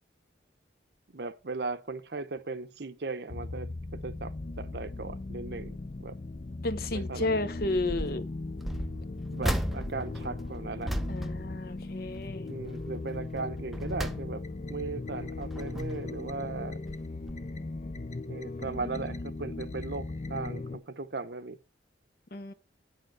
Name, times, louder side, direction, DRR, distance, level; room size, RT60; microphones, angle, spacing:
voice 1, 1.1-6.2 6.9-7.4 9.3-10.9 12.5-14.4 14.7-16.8 18.3-21.6, right 3 dB, 60° right, 0.8 m, -37 dB
sound 1, 3.3-20.8, left 2 dB, 40° left, 0.6 m, -38 dB
voice 2, 6.6-8.2 11.1-12.5 22.3-22.5, left 2 dB, 55° left, 0.9 m, -32 dB
sound 2, 7.6-8.2 8.6-12.3 12.6-13.0 13.5-14.7 15.2-16.2 16.9-17.0 17.3-17.4, equal, ahead, 0.6 m, -36 dB
9.2 x 6.6 x 4.7 m
head